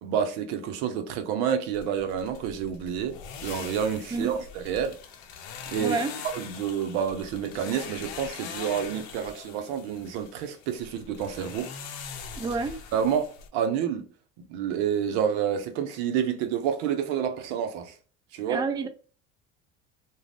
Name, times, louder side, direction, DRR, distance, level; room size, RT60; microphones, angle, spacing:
voice 1, 0.0-3.2 3.4-5.0 5.7-6.0 6.3-11.7 12.9-14.0 14.5-17.9 18.3-18.6, right 8 dB, 70° right, 0.7 m, -29 dB
sound 1, 1.7-13.5, left 6 dB, 65° left, 0.6 m, -42 dB
voice 2, 5.8-6.1 12.4-12.7 18.5-18.9, right 4 dB, 10° right, 0.3 m, -28 dB
2.5 x 2.2 x 3.2 m
hypercardioid pair, 70°, 37 cm